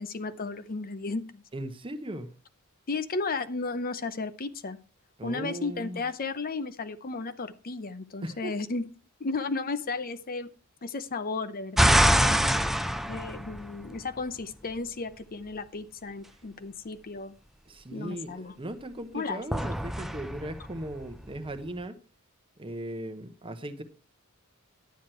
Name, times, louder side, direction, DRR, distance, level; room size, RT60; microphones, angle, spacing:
voice 1, 0.0-1.4 2.9-4.8 5.2-8.9 9.2-10.5 10.8-12.5 13.1-17.4 17.9-18.6 19.1-19.6, left 3 dB, 40° left, 0.7 m, -34 dB
voice 2, 1.5-2.3 5.2-6.0 8.2-8.5 17.7-22.0 22.6-23.8, right 1 dB, 25° right, 1.0 m, -38 dB
sound 1, 11.8-14.2 19.5-21.6, equal, ahead, 0.5 m, -25 dB
10.5 x 9.4 x 4.4 m
head